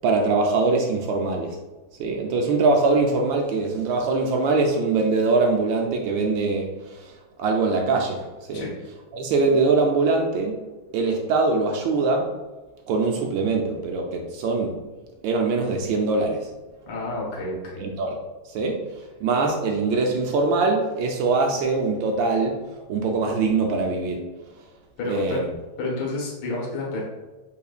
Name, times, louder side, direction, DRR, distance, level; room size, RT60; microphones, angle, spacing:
voice 1, 0.0-1.6 2.0-8.7 9.1-10.6 10.9-12.3 12.9-14.8 15.2-16.5 17.8-18.2 18.4-24.2 25.1-25.5, right 3 dB, 75° right, 2 dB, 1.2 m, -23 dB
voice 2, 16.9-17.9 25.0-25.4 25.8-27.0, left 2 dB, 65° left, -3 dB, 1.9 m, -29 dB
5.7 x 4.0 x 2.4 m, 1.2 s
omnidirectional pair, 2.3 m